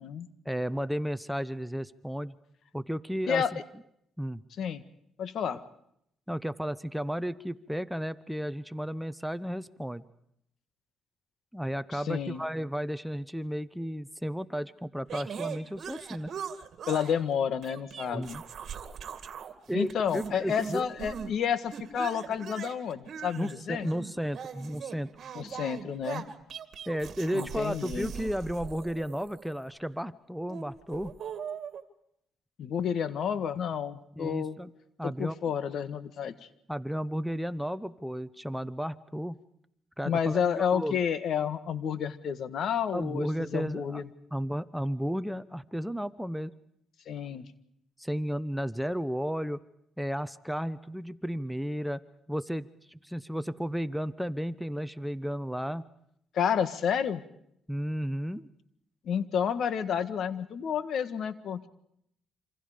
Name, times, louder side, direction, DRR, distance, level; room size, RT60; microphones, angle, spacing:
voice 1, 0.4-2.3 2.7-3.6 4.2-4.4 6.3-10.0 11.5-16.3 18.1-18.4 19.7-20.8 23.4-25.1 26.9-31.2 34.2-34.7 35.0-35.4 36.7-39.4 40.0-41.0 42.9-44.0 44.3-46.5 48.0-49.6 50.0-52.0 52.3-55.9 57.7-58.5, equal, ahead, 14 dB, 0.9 m, -33 dB
voice 2, 5.2-5.6 11.9-12.4 16.9-18.4 19.7-23.9 25.3-26.2 27.3-28.1 32.6-34.6 35.0-36.3 40.0-44.0 47.0-47.5 56.3-57.2 59.0-61.6, left 8 dB, 65° left, 13 dB, 1.7 m, -30 dB
sound 1, 15.1-17.2 17.6-19.5 19.8-21.3 21.7-29.7 30.4-31.8, right 7 dB, 55° right, 2.3 m, -41 dB
27.5 x 26.5 x 5.1 m, 0.73 s
cardioid pair, 90°, 0 cm